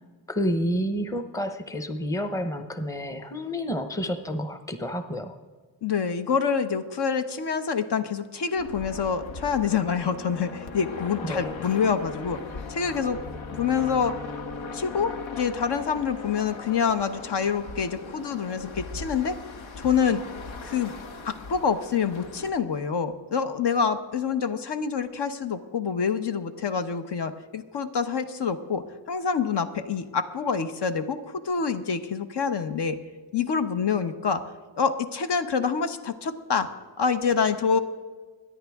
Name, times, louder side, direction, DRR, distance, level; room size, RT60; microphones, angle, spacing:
voice 1, 0.3-5.3 11.3-11.5, equal, 5° left, 9 dB, 0.8 m, -29 dB
voice 2, 5.8-12.4 12.7-13.2 13.5-14.2 14.7-19.4 19.8-20.2 20.6-20.9 21.2-33.0 33.3-34.4 34.8-36.7 37.0-37.8, left 6 dB, 60° left, 9 dB, 0.9 m, -26 dB
sound 1, 8.6-22.5, left 4 dB, 80° left, 1.3 m, -39 dB
23.0 x 10.0 x 3.5 m, 1.5 s
wide cardioid pair, 135°, 46 cm